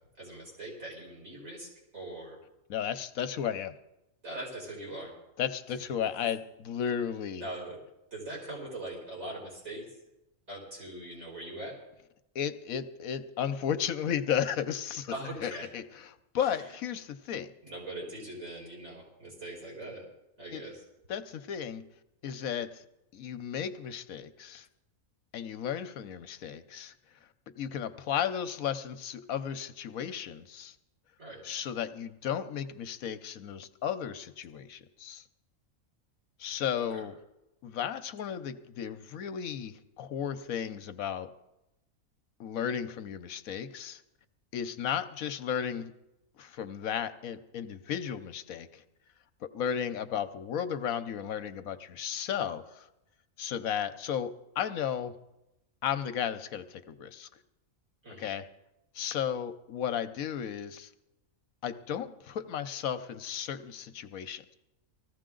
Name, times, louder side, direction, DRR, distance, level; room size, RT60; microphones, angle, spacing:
voice 1, 0.2-1.7 1.9-2.4 4.2-5.1 5.7-5.8 7.3-7.8 8.1-10.0 10.5-11.8 15.1-15.7 16.3-16.7 17.6-20.1 20.4-20.8 31.2-31.4 36.9-37.0 58.0-58.3, right 1 dB, 70° right, -4 dB, 6.4 m, -41 dB
voice 2, 2.7-3.8 5.4-7.5 12.3-15.1 15.4-15.8 16.3-17.5 20.5-20.6 21.1-21.8 22.2-22.8 23.1-24.7 25.3-26.9 27.6-30.7 31.4-35.2 36.4-37.1 37.6-41.3 42.4-44.0 44.5-45.9 46.4-48.8 49.4-52.9 53.4-55.1 55.8-57.3 58.2-58.5 58.9-60.9 61.6-64.5, left 8 dB, 75° left, 11 dB, 1.2 m, -34 dB
19.5 x 15.0 x 3.8 m, 0.91 s
omnidirectional pair, 1.5 m